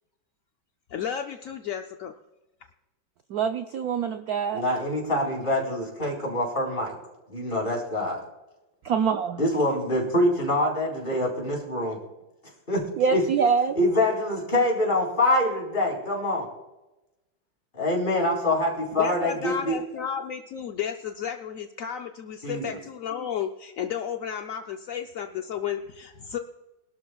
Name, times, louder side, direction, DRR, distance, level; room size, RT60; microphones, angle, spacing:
voice 1, 0.9-2.1 18.9-26.4, left 8 dB, 65° left, 4 dB, 0.8 m, -33 dB
voice 2, 3.3-4.6 8.8-9.4 13.0-13.8, right 6 dB, 65° right, 6 dB, 1.0 m, -25 dB
voice 3, 4.5-7.0 7.3-8.2 9.4-12.0 12.7-12.8 13.1-13.2 13.8-16.5 17.7-19.8 22.4-22.8, left 1 dB, 25° left, -2 dB, 4.3 m, -25 dB
24.0 x 12.0 x 2.3 m, 1.0 s
omnidirectional pair, 2.1 m